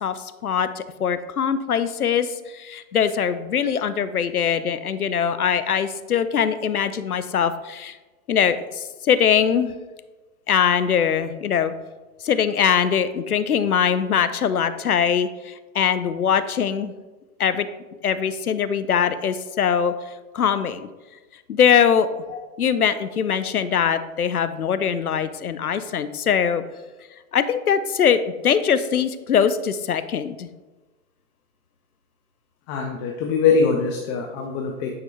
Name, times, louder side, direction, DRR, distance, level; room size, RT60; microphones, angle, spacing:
voice 1, 0.0-8.0 8.3-9.7 10.5-11.7 12.2-16.9 17.4-17.7 18.0-19.9 20.3-20.9 21.5-22.1 22.6-26.6 27.3-30.5, left 7 dB, 90° left, 12 dB, 0.5 m, -22 dB
voice 2, 32.7-34.9, left 5 dB, 20° left, 1 dB, 0.3 m, -22 dB
8.6 x 4.4 x 3.3 m, 1.2 s
figure-of-eight pair, 100°, 43 cm